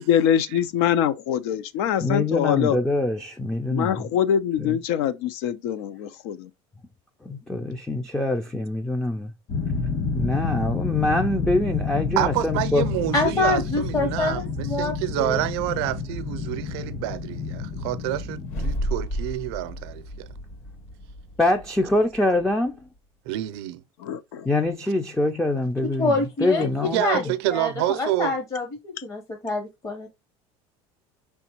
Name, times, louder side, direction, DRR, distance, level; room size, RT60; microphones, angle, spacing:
voice 1, 0.0-2.8 3.7-6.5 24.0-24.5, left 9 dB, 80° left, 0.6 m, -24 dB
voice 2, 2.0-4.0 4.6-4.7 7.3-9.3 10.1-12.8 21.4-22.8 24.5-26.1 26.4-27.3, left 2 dB, 5° left, 0.4 m, -24 dB
sound 1, 9.5-18.7, left 4 dB, 45° left, 1.4 m, -29 dB
voice 3, 12.2-20.3 23.3-23.8 26.8-28.3, right 14 dB, 85° right, 0.5 m, -28 dB
voice 4, 13.1-15.4 26.0-30.1, left 2 dB, 25° left, 0.8 m, -26 dB
sound 2, 18.4-22.7, equal, 60° left, 1.7 m, -33 dB
5.1 x 3.4 x 2.9 m
cardioid pair, 140°, 13 cm